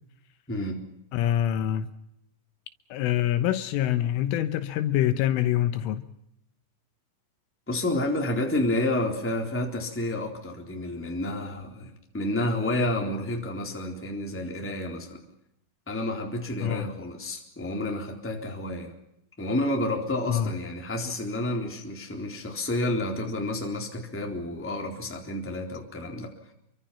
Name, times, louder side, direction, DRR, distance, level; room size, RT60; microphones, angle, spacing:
voice 1, 0.5-0.8 7.7-15.2 15.9-18.9 19.4-26.3, left 1 dB, 5° left, 2.7 m, -30 dB
voice 2, 1.1-1.9 2.9-6.0 16.6-16.9 20.3-20.5, left 11 dB, 75° left, 3.4 m, -25 dB
29.0 x 23.5 x 5.8 m
omnidirectional pair, 5.9 m